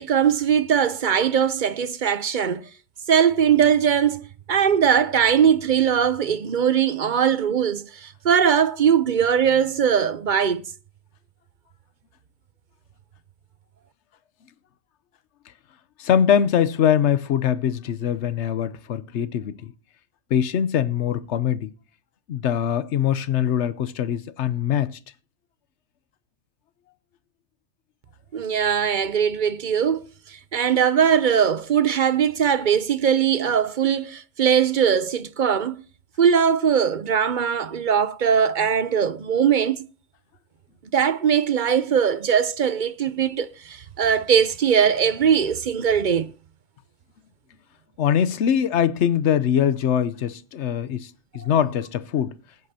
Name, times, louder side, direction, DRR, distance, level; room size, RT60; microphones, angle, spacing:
voice 1, 0.0-2.7 3.1-4.2 4.5-10.7 28.3-30.0 30.5-35.8 36.2-39.8 40.9-46.3, right 8 dB, 50° right, 0.7 m, -20 dB
voice 2, 16.0-19.7 20.3-21.7 22.3-25.0 48.0-52.3, left 9 dB, 75° left, 1.0 m, -22 dB
19.5 x 9.4 x 2.8 m
omnidirectional pair, 1.2 m